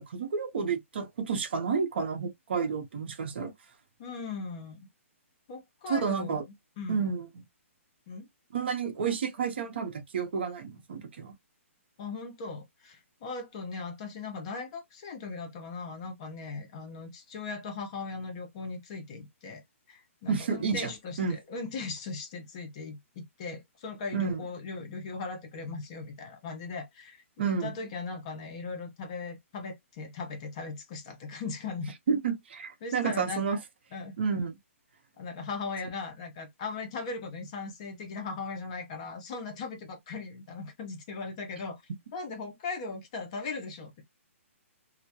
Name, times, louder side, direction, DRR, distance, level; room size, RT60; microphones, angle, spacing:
voice 1, 0.0-3.5 5.9-6.4 6.9-7.4 8.5-11.3 20.3-20.9 21.2-21.4 24.1-24.4 27.4-27.7 32.1-33.6 34.2-34.6, right 5 dB, 50° right, 0.7 m, -30 dB
voice 2, 4.0-4.9 5.5-6.4 6.8-7.0 8.1-8.3 12.0-19.6 19.9-31.9 32.8-33.5 33.9-34.1 35.2-41.8 42.1-44.0, left 4 dB, 25° left, 0.6 m, -38 dB
2.2 x 2.1 x 2.7 m
hypercardioid pair, 170°, 7 cm